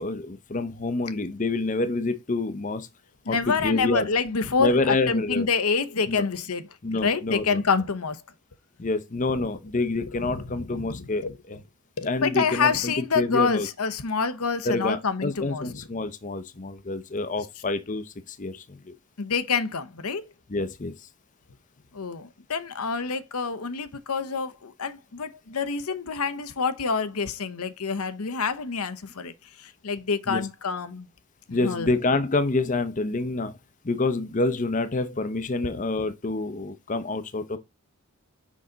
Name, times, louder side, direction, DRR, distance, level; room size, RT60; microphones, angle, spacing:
voice 1, 0.0-2.9 3.3-4.1 4.6-5.5 6.1-6.2 6.8-7.6 8.8-11.6 12.0-13.7 14.6-18.9 20.5-21.1 30.3-30.5 31.5-33.6 33.8-37.6, left 2 dB, 35° left, 0.7 m, -27 dB
voice 2, 3.3-6.7 6.9-8.2 10.0-10.5 10.7-11.3 12.0-15.8 19.2-20.2 21.9-29.3 29.6-31.1 31.5-31.9 35.6-35.7, left 5 dB, 85° left, 0.9 m, -27 dB
6.2 x 5.7 x 3.9 m
head